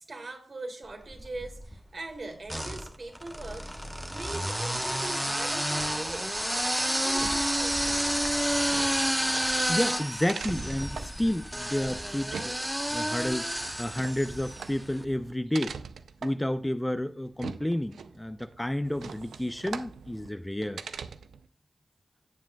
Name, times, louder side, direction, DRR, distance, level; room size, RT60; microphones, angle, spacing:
voice 1, 0.1-3.8 4.1-6.3 6.8-8.2, right 2 dB, 55° right, 1.7 m, -41 dB
sound 1, 1.1-1.8 2.5-14.8, equal, 10° right, 1.0 m, -30 dB
sound 2, 7.0-21.5, right 6 dB, 90° right, 0.4 m, -43 dB
voice 2, 9.7-15.8 16.2-20.8, left 1 dB, 15° left, 0.5 m, -31 dB
14.0 x 7.3 x 2.3 m
cardioid pair, 45°, 0 cm